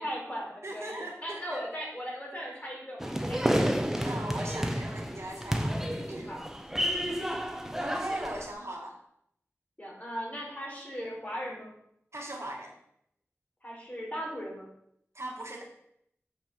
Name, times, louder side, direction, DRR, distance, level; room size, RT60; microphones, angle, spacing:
voice 1, 0.0-3.6 6.2-6.5 9.8-11.7 13.6-14.7, equal, 30° left, -4 dB, 4.1 m, -38 dB
voice 2, 0.6-1.6 3.6-3.7 4.0-6.3 7.8-8.9 12.1-12.7 15.1-15.6, right 1 dB, 60° right, 0 dB, 1.8 m, -39 dB
sound 1, 3.0-8.5, equal, 10° right, 1.0 m, -30 dB
7.8 x 6.1 x 5.3 m, 0.73 s
wide cardioid pair, 50°, 5 cm